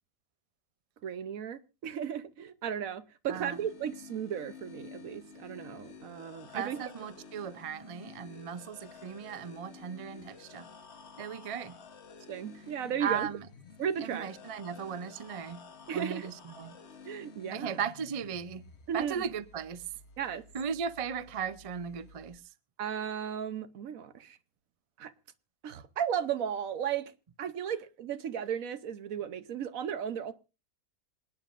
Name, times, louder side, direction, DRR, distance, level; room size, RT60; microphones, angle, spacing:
voice 1, 1.0-6.8 12.3-13.3 13.8-14.3 15.9-16.3 17.0-17.8 18.9-19.2 20.2-20.4 22.8-24.4 25.0-25.1 25.6-27.1 27.4-30.3, right 8 dB, 70° right, 1.3 m, -35 dB
sound 1, 3.3-22.4, left 5 dB, 50° left, 1.3 m, -52 dB
voice 2, 6.5-10.7 11.2-11.8 13.0-13.5 14.0-15.6 15.9-16.8 17.5-18.6 18.9-19.8 20.5-22.4, right 7 dB, 45° right, 0.4 m, -37 dB
26.5 x 9.5 x 2.5 m
omnidirectional pair, 1.5 m